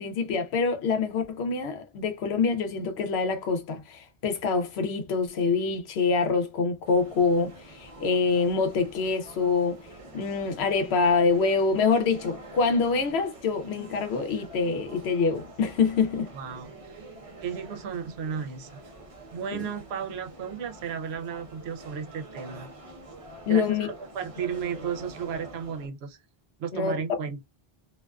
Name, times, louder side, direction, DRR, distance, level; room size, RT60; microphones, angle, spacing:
voice 1, 0.0-9.8 10.1-16.3 19.5-19.7 23.5-23.9 26.7-27.0, left 4 dB, 85° left, 0.9 m, -25 dB
sound 1, 6.8-25.9, right 2 dB, 40° right, 0.7 m, -46 dB
voice 2, 16.3-17.0 17.4-18.7 19.3-22.7 23.5-26.2 26.6-27.4, right 7 dB, 80° right, 0.8 m, -34 dB
2.4 x 2.3 x 2.3 m
omnidirectional pair, 1.1 m